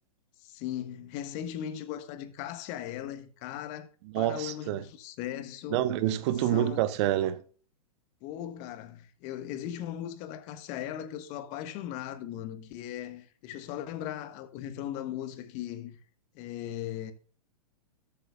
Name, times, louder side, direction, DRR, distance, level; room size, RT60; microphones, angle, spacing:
voice 1, 0.4-3.9 4.1-5.9 6.5-6.8 8.2-16.0 16.3-17.1, left 11 dB, 40° left, 1.3 m, -38 dB
voice 2, 4.1-4.8 5.7-7.4, right 13 dB, 45° right, 1.1 m, -27 dB
13.0 x 8.4 x 2.3 m
hypercardioid pair, 115°, 19 cm